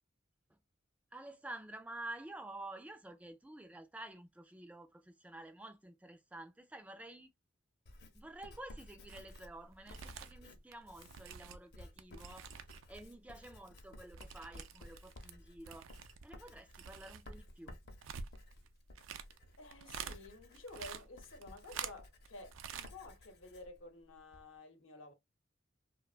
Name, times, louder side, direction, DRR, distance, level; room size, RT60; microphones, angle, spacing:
voice 1, 1.1-7.3 8.1-12.5 12.9-15.9 16.2-17.8, right 1 dB, 5° right, 0.3 m, -50 dB
Writing, 7.9-24.5, left 1 dB, 55° left, 0.6 m, -56 dB
sound 1, 9.1-9.4 9.7-13.0 13.2-15.4 15.6-20.2 20.5-22.3 22.5-22.9 23.2-23.3, right 7 dB, 90° right, 0.4 m, -48 dB
voice 2, 19.6-25.1, left 2 dB, 85° left, 0.8 m, -52 dB
2.7 x 2.2 x 2.3 m
head